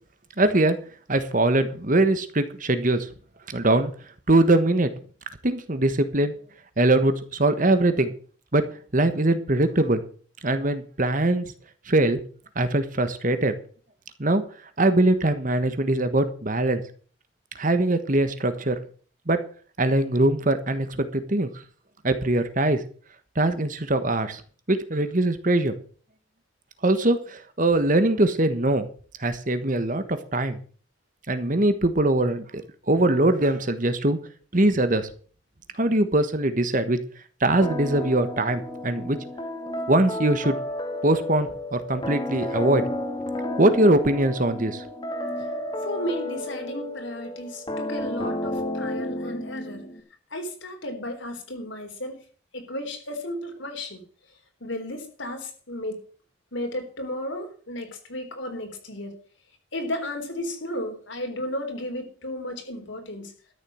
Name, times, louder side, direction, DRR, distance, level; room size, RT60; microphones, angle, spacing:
voice 1, 0.4-0.8 1.1-3.1 3.5-3.9 4.3-4.9 5.4-6.3 6.8-8.1 8.5-8.6 8.9-10.0 10.4-11.5 11.9-12.2 12.5-13.5 14.2-14.4 14.8-16.8 17.5-18.8 19.3-19.4 19.8-21.5 22.0-22.8 23.3-24.4 24.7-25.7 26.8-28.9 29.2-30.6 31.3-34.2 34.5-35.1 35.8-37.0 37.4-39.2 39.9-40.6 41.0-42.8 43.6-44.8, right 2 dB, 40° right, 10 dB, 1.3 m, -22 dB
sound 1, 37.6-50.0, left 1 dB, 20° left, 2.0 m, -32 dB
voice 2, 45.8-49.8 50.3-52.2 52.5-54.0 54.6-56.0 56.5-59.1 59.7-63.3, left 1 dB, 65° left, 4 dB, 3.8 m, -33 dB
13.0 x 7.5 x 7.6 m, 0.42 s
head